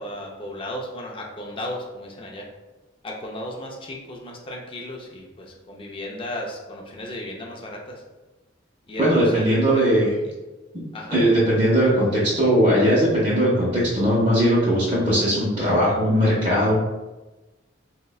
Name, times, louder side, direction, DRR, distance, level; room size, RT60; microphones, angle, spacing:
voice 1, 0.0-2.5 3.0-8.0 8.9-10.3 10.9-11.2, left 1 dB, 30° left, -1 dB, 0.4 m, -35 dB
voice 2, 9.0-10.1 11.1-16.8, equal, 25° right, -9 dB, 0.6 m, -19 dB
3.7 x 2.1 x 2.3 m, 1.1 s
head